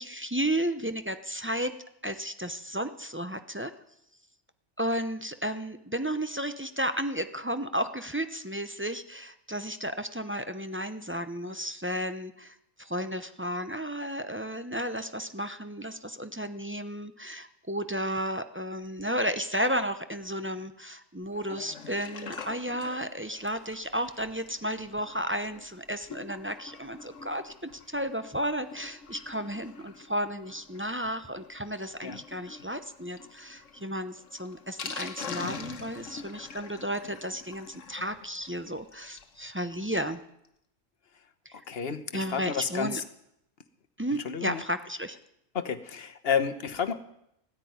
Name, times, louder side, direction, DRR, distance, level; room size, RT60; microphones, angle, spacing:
voice 1, 0.0-1.7 2.0-3.7 4.8-40.2 41.4-41.6 42.1-43.0 44.0-45.2, equal, 15° right, 9 dB, 0.6 m, -33 dB
Sink (filling or washing), 21.3-39.4 39.7-39.8 40.0-40.1 40.4-40.5, left 5 dB, 75° left, 1.5 m, -45 dB
voice 2, 41.7-43.0 44.2-44.6 45.5-46.9, left 7 dB, 50° left, 9 dB, 1.3 m, -30 dB
15.0 x 10.0 x 9.4 m, 0.78 s
omnidirectional pair, 1.3 m